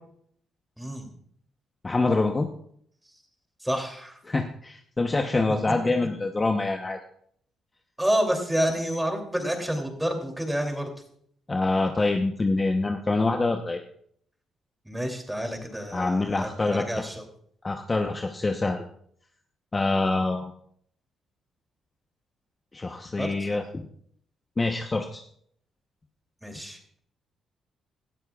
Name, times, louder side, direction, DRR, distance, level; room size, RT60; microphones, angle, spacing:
voice 1, 0.8-1.1 3.6-4.2 5.8-5.9 8.0-10.9 14.8-17.2 23.2-23.5 26.4-27.0, equal, 5° right, 3 dB, 2.8 m, -29 dB
voice 2, 1.8-2.5 4.3-7.0 11.5-13.8 15.9-17.0 17.6-18.8 19.7-20.5 22.7-23.9 24.6-25.2, left 3 dB, 25° left, 4 dB, 0.9 m, -25 dB
18.0 x 12.0 x 2.4 m, 0.66 s
cardioid pair, 90°, 0 cm